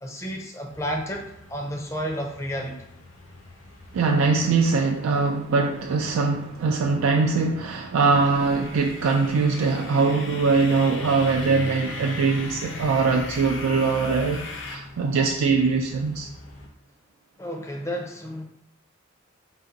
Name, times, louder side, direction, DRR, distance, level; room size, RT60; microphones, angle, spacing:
voice 1, 0.0-2.8 17.4-18.4, equal, 15° left, 1 dB, 0.5 m, -31 dB
sound 1, 0.7-16.7, left 1 dB, 85° left, 1.0 m, -44 dB
voice 2, 3.9-16.3, right 4 dB, 85° right, 2 dB, 0.3 m, -22 dB
sound 2, 8.1-14.8, left 3 dB, 60° left, 0.5 m, -38 dB
3.9 x 2.4 x 3.9 m, 0.75 s
head